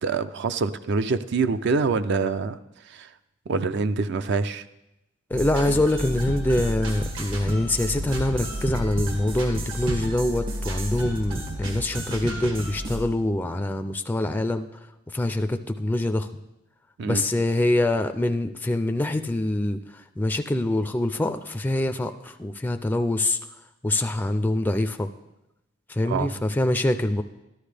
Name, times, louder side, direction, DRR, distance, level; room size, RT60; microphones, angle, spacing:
voice 1, 0.0-2.6 2.8-3.1 3.5-4.6 17.0-17.2 26.1-26.3, right 4 dB, 60° right, 12 dB, 0.4 m, -25 dB
voice 2, 5.3-14.7 15.1-16.3 17.0-23.4 23.8-25.1 25.9-27.2, left 1 dB, 10° left, 8 dB, 0.3 m, -25 dB
sound 1, 5.3-13.0, equal, 75° right, 1.9 m, -31 dB
13.0 x 11.5 x 3.4 m, 0.92 s
head